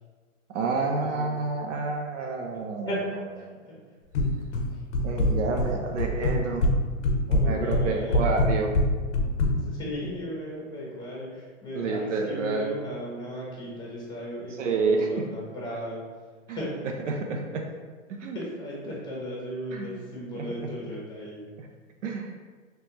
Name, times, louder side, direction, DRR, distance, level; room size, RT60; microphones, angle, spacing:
voice 1, 0.5-2.9 3.4-3.6 5.0-6.6 7.3-8.7 11.7-12.7 14.6-15.1 16.5-16.6 17.1-17.6 18.1-18.4 19.7-19.9 20.3-20.5 21.6-21.7 22.0-22.3, right 4 dB, 65° right, 2 dB, 0.6 m, -29 dB
voice 2, 1.0-1.3 2.8-3.0 3.3-3.7 7.4-8.3 9.4-16.0 16.5-16.7 18.3-21.4, equal, 10° left, -5 dB, 1.2 m, -36 dB
sound 1, 4.1-4.7 4.9-5.7 6.0-6.8 7.0-9.5, left 2 dB, 55° left, 0.7 m, -23 dB
3.3 x 3.0 x 2.9 m, 1.4 s
hypercardioid pair, 125°, 40 cm